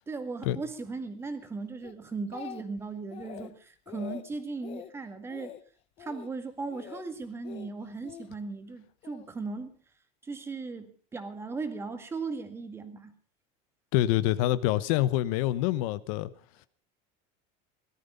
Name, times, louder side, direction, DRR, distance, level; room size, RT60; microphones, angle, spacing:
voice 1, 0.1-5.5 6.0-9.7 10.2-13.1, right 4 dB, 15° right, 2.0 m, -37 dB
Speech, 1.8-2.8 3.1-3.5 3.9-4.2 4.6-4.9 5.3-5.6 6.0-6.3 6.7-7.1 7.4-8.3 9.0-9.3, left 10 dB, 35° left, 1.1 m, -44 dB
voice 2, 13.9-16.3, left 14 dB, 75° left, 1.0 m, -26 dB
18.0 x 13.0 x 5.3 m
cardioid pair, 165°, 17 cm